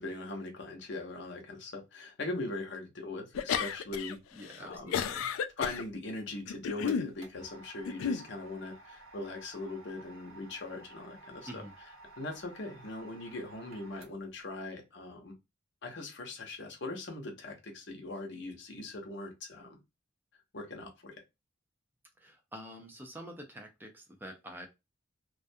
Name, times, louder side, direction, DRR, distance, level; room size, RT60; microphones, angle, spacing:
voice 1, 0.0-4.2 4.6-5.0 5.6-11.6 12.2-15.3 15.8-19.8 20.5-21.2, left 2 dB, 60° left, 0.8 m, -40 dB
sound 1, 3.4-4.1 4.5-5.8 6.5-7.1 7.8-8.2, left 7 dB, 85° left, 0.3 m, -32 dB
voice 2, 4.3-5.3 11.5-11.7 22.2-24.7, equal, 10° right, 0.5 m, -47 dB
sound 2, 6.4-14.4, right 2 dB, 85° right, 0.9 m, -54 dB
2.4 x 2.2 x 2.6 m
head